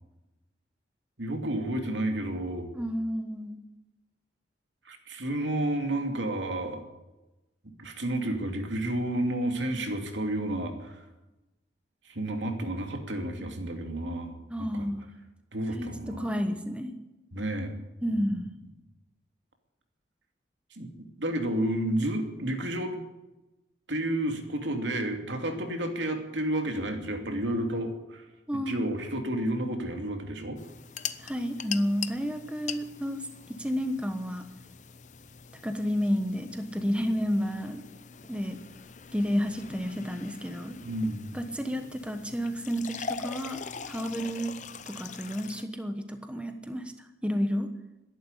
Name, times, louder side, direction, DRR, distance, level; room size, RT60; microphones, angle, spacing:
voice 1, 1.2-2.7 4.8-6.8 7.6-11.1 12.0-14.3 14.6-14.9 15.5-16.3 17.3-17.8 18.1-18.2 20.7-20.9 21.2-23.0 23.9-28.3 28.7-30.6 40.8-41.3, right 1 dB, 85° right, 4 dB, 2.7 m, -31 dB
voice 2, 2.7-3.6 14.5-15.1 15.7-16.9 18.0-18.5 28.5-28.9 31.2-34.5 35.6-37.8 38.3-38.6 39.1-40.8 41.3-43.6 43.8-44.5 44.9-47.7, equal, 5° right, 6 dB, 1.1 m, -31 dB
sound 1, 30.6-45.6, left 6 dB, 40° left, 0.7 m, -42 dB
13.0 x 11.0 x 9.8 m, 1.0 s
head